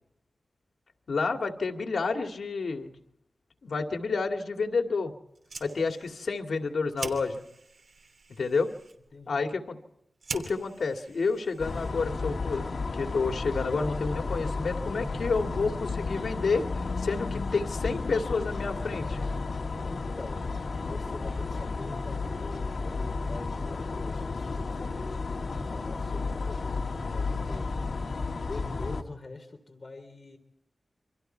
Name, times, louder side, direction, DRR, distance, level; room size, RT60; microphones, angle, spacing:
voice 1, 1.1-3.0 3.6-5.1 5.6-7.4 8.4-8.7 9.3-9.8 10.3-12.6 12.9-16.6 17.0-19.2, left 4 dB, 85° left, 4 dB, 2.4 m, -29 dB
Fire, 5.3-12.2, right 4 dB, 75° right, 3.0 m, -44 dB
voice 2, 9.1-9.5 19.8-20.5 20.8-25.2 25.7-26.7 27.0-27.7 28.1-30.4, left 3 dB, 40° left, 5 dB, 3.5 m, -44 dB
sound 1, 11.6-29.0, left 3 dB, 65° left, 2.1 m, -33 dB
28.0 x 26.0 x 4.6 m, 0.80 s
wide cardioid pair, 115°, 0 cm